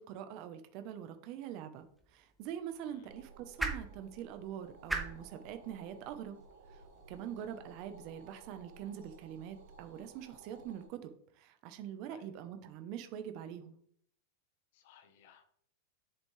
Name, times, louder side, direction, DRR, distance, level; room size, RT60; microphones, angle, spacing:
voice 1, 0.0-6.4 6.7-6.8 7.1-13.8, right 9 dB, 35° right, 8 dB, 0.9 m, -44 dB
sound 1, 1.8-8.0, right 2 dB, 5° right, 0.8 m, -44 dB
sound 2, 3.0-10.9, right 3 dB, 75° right, 3.4 m, -57 dB
voice 2, 14.7-15.6, left 7 dB, 50° left, 9 dB, 1.1 m, -60 dB
8.1 x 7.1 x 3.3 m, 0.64 s
supercardioid pair, 175°, 0 cm